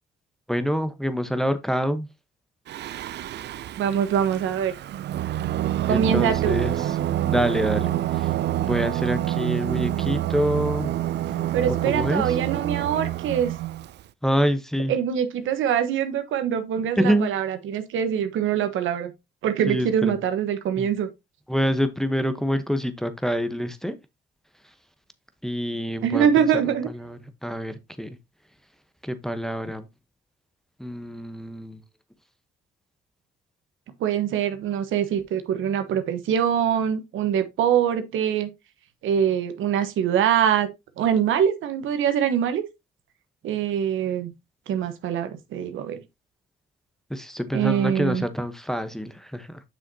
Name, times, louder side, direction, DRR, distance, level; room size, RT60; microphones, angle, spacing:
voice 1, 0.5-2.1 5.8-7.0 7.2-8.3 8.6-10.9 11.8-12.4 14.2-14.9 17.0-17.3 19.7-20.2 20.8-20.9 21.5-24.0 25.4-28.2 29.0-29.9 30.8-31.8 47.1-49.6, equal, ahead, 0.9 m, -26 dB
Singing, 2.7-14.0, right 13 dB, 60° right, 0.4 m, -27 dB
voice 2, 3.8-4.7 5.8-6.6 11.5-13.5 14.9-19.1 19.4-21.1 26.0-26.9 34.0-38.5 39.0-40.7 41.0-42.6 43.4-44.3 44.7-46.0 47.5-48.3, right 8 dB, 80° right, 1.1 m, -24 dB
7.5 x 6.2 x 2.7 m
cardioid pair, 90°, 20 cm